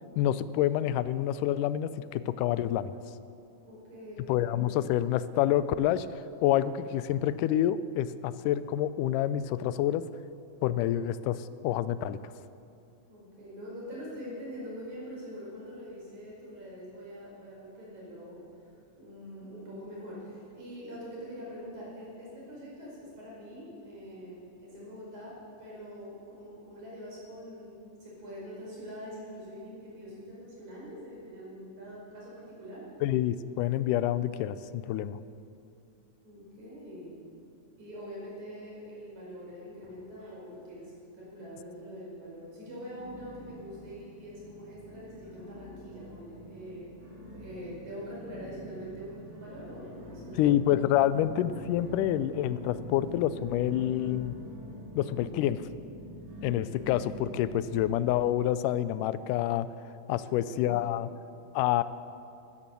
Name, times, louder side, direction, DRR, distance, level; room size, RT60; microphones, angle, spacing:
voice 1, 0.2-3.0 4.3-10.1 10.6-12.2 33.0-35.2 50.4-54.4 55.0-55.6 56.4-59.7 60.1-61.1 61.5-61.8, left 12 dB, 90° left, 15 dB, 2.1 m, -27 dB
voice 2, 3.6-4.5 13.1-32.9 36.2-37.2 37.8-50.5 60.2-61.1, equal, 65° right, -5 dB, 6.5 m, -44 dB
sound 1, 39.8-40.7 41.0-41.6 42.1-42.2 42.9-58.1, equal, 80° right, 6.6 m, -46 dB
14.5 x 13.5 x 6.9 m, 2.6 s
omnidirectional pair, 3.6 m